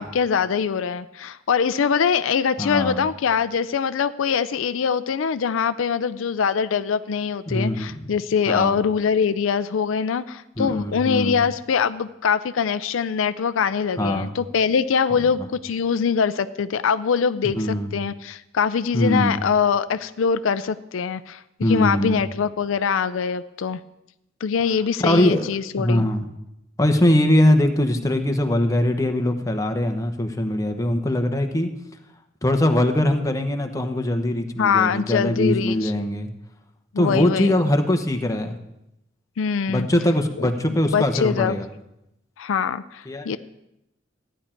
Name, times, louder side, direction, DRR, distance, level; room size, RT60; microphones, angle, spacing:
voice 1, 0.0-17.6 17.9-21.4 21.7-23.8 24.4-26.1 34.6-35.9 36.9-37.6 39.4-39.9 40.4-40.5 40.9-41.5 42.4-43.4, left 6 dB, 85° left, 13 dB, 0.4 m, -23 dB
voice 2, 2.6-3.0 7.5-8.1 8.5-8.8 10.6-11.4 14.0-14.3 15.1-15.2 17.4-17.9 18.9-19.4 21.6-22.2 25.0-25.5 25.8-26.2 26.8-31.7 32.4-36.3 37.0-38.6 39.7-41.7 43.1-43.4, left 1 dB, 15° left, 5 dB, 1.0 m, -21 dB
14.5 x 10.0 x 4.4 m, 0.87 s
head